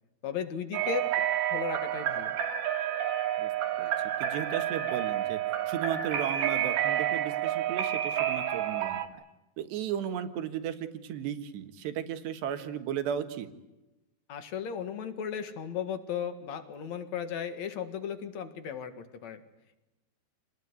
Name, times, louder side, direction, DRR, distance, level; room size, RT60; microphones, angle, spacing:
voice 1, 0.2-1.1 1.5-2.3 14.3-19.4, left 8 dB, 50° left, 10 dB, 2.7 m, -35 dB
sound 1, 0.7-9.1, right 11 dB, 65° right, 3.5 m, -30 dB
voice 2, 4.2-5.4 5.7-9.0 9.6-13.5, right 9 dB, 90° right, 9 dB, 3.8 m, -35 dB
27.5 x 19.5 x 9.7 m, 0.99 s
omnidirectional pair, 4.7 m